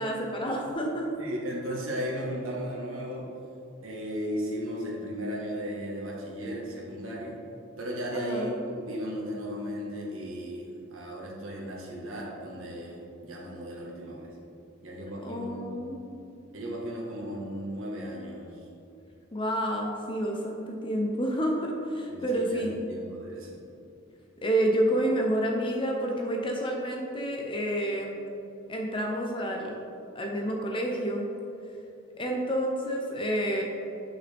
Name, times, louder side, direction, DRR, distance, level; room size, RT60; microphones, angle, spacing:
voice 1, 0.0-1.1 8.1-8.6 15.2-16.0 19.3-22.9 24.4-28.2 28.7-29.8 30.1-31.3 32.2-33.6, right 1 dB, 25° left, 1 dB, 0.7 m, -29 dB
voice 2, 1.2-3.3 3.8-7.3 7.8-14.3 14.8-15.8 16.5-18.5 22.1-23.6, equal, 80° right, -3 dB, 1.5 m, -35 dB
8.5 x 5.9 x 3.5 m, 2.7 s
head